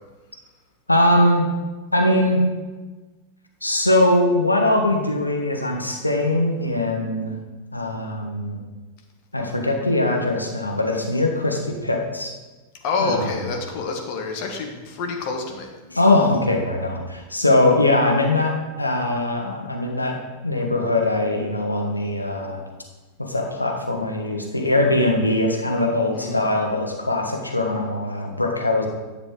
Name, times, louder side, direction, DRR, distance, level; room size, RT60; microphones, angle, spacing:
voice 1, 0.9-1.4 1.9-2.4 3.6-7.4 7.7-8.6 9.3-12.3 13.0-13.3 15.9-20.1 20.4-22.6 23.3-28.9, left 1 dB, 85° left, 1 dB, 1.2 m, -21 dB
voice 2, 12.8-15.7 26.1-26.5, left 4 dB, 45° left, 2 dB, 1.4 m, -27 dB
10.5 x 6.7 x 3.8 m, 1.2 s
figure-of-eight pair, 90°, 0 cm